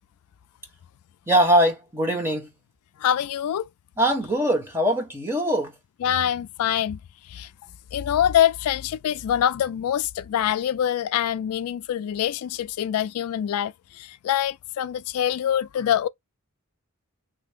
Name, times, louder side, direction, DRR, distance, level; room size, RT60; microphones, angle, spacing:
voice 1, 1.3-2.5 4.0-5.7, equal, 10° right, 1.1 m, -22 dB
voice 2, 3.0-3.7 6.0-7.0 7.3-7.5 7.9-16.1, left 10 dB, 80° left, 0.3 m, -25 dB
3.3 x 2.1 x 3.4 m
head